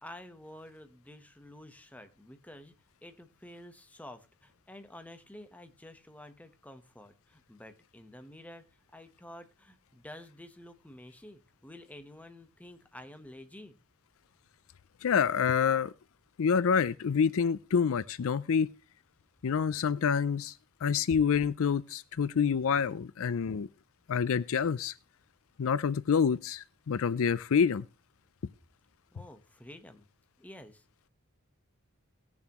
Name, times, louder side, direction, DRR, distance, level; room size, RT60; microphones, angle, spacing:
voice 1, 0.0-2.7 3.0-8.7 8.9-13.8 29.1-30.1 30.4-30.8, left 1 dB, 5° left, 8 dB, 1.1 m, -50 dB
voice 2, 15.0-15.9 16.4-18.7 19.4-20.5 20.8-23.7 24.1-24.9 25.6-27.8, left 6 dB, 70° left, 17 dB, 0.4 m, -27 dB
19.5 x 7.1 x 3.0 m, 0.30 s
head